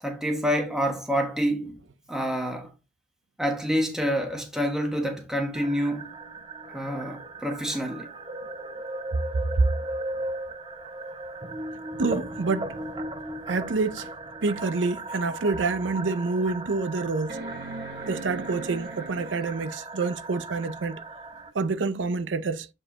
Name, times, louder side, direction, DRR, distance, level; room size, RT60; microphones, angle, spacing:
voice 1, 0.0-1.8 2.1-2.7 3.4-6.1 6.7-8.1, equal, 5° right, 1.3 m, -27 dB
sound 1, 5.5-21.5, right 2 dB, 25° right, 0.7 m, -37 dB
voice 2, 12.0-12.8 13.5-14.1 14.4-17.4 18.1-21.0 21.5-22.7, right 3 dB, 90° right, 0.6 m, -27 dB
sound 2, 15.1-15.2 15.8-15.9 17.3-19.8 21.5-21.6, right 2 dB, 60° right, 1.2 m, -39 dB
7.6 x 4.6 x 2.9 m
head